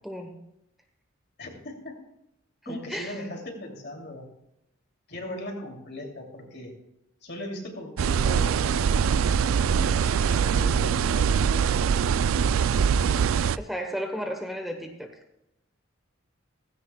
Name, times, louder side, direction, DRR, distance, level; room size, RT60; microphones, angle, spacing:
voice 1, 0.0-0.4 2.6-3.2 13.6-15.1, equal, ahead, 3 dB, 1.0 m, -34 dB
voice 2, 1.4-2.0 2.6-4.3 5.1-6.7 7.2-8.9 9.7-11.8, left 1 dB, 55° left, 1 dB, 2.7 m, -39 dB
sound 1, 8.0-13.6, right 7 dB, 90° right, 0.3 m, -23 dB
16.5 x 16.0 x 2.3 m, 0.84 s
head